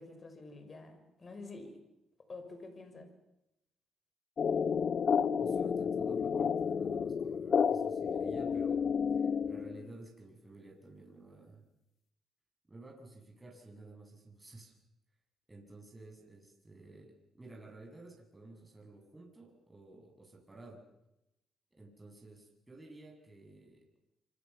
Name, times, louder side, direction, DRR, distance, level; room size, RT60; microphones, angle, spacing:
voice 1, 0.0-1.8 2.3-3.1, left 3 dB, 35° left, 8 dB, 6.2 m, -48 dB
sound 1, 4.4-9.9, left 6 dB, 50° left, 1.2 m, -31 dB
voice 2, 5.4-8.9 9.1-11.6 12.7-14.7 15.5-20.8 21.8-23.8, right 2 dB, 15° right, 0 dB, 7.7 m, -53 dB
26.0 x 26.0 x 7.2 m, 0.87 s
cardioid pair, 90°, 0 cm